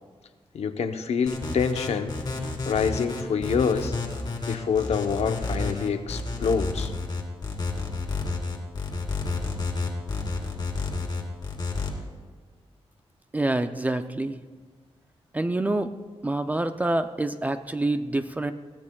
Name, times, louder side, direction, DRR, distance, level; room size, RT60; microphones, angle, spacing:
voice 1, 0.5-2.1 2.7-3.9 4.5-6.9, left 6 dB, 80° left, 7 dB, 0.8 m, -26 dB
sound 1, 1.3-11.9, left 3 dB, 40° left, 2.0 m, -30 dB
voice 2, 13.3-14.4 15.3-15.9 16.2-18.5, right 2 dB, 15° right, 9 dB, 0.4 m, -26 dB
21.5 x 15.5 x 2.3 m, 1.5 s
wide cardioid pair, 160°, 11 cm